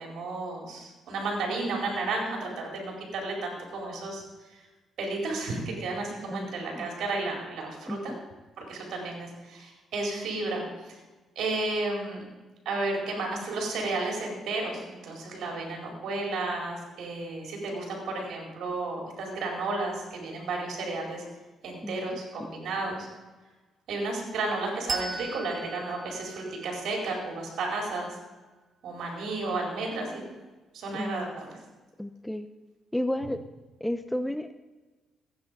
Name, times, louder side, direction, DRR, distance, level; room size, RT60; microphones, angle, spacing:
voice 1, 0.0-4.2 5.0-8.2 8.6-11.0 11.4-12.2 12.6-21.2 21.6-23.1 23.9-28.1 28.8-30.2 30.7-31.6, right 2 dB, 75° right, 0 dB, 4.5 m, -32 dB
voice 2, 7.9-8.2 21.8-22.0 22.4-22.5 30.9-31.3 32.0-32.5 32.9-33.4 33.8-34.5, left 1 dB, 5° left, 10 dB, 0.6 m, -32 dB
Bell, 24.9-28.0, right 4 dB, 35° right, 1.3 m, -39 dB
15.0 x 10.0 x 5.3 m, 1.2 s
cardioid pair, 90°, 0 cm